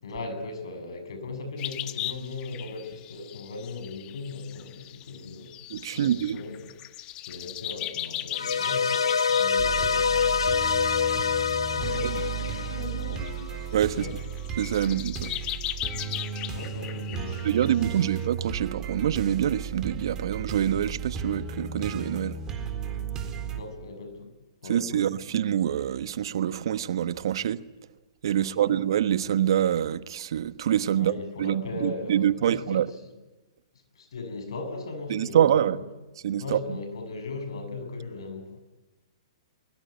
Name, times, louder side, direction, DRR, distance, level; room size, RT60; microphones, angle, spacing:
voice 1, 0.0-5.5 5.9-6.7 7.2-10.5 11.7-13.6 13.9-14.1 16.1-18.0 23.5-24.3 24.6-25.0 28.4-28.8 30.9-33.1 34.0-35.8 36.4-38.6, left 3 dB, 70° left, 7.2 m, -38 dB
sound 1, 1.6-13.4 13.9-18.3, left 15 dB, 30° left, 1.3 m, -39 dB
voice 2, 5.7-6.4 12.0-12.1 13.7-14.1 14.6-15.3 17.4-22.4 24.7-27.6 28.2-31.1 31.4-32.9 35.1-35.8 36.2-36.6, right 10 dB, 65° right, 1.2 m, -25 dB
sound 2, 8.3-13.6, left 6 dB, 90° left, 1.1 m, -26 dB
sound 3, 9.6-23.6, right 6 dB, 25° right, 4.1 m, -35 dB
23.0 x 22.5 x 9.3 m
hypercardioid pair, 120°, 3 cm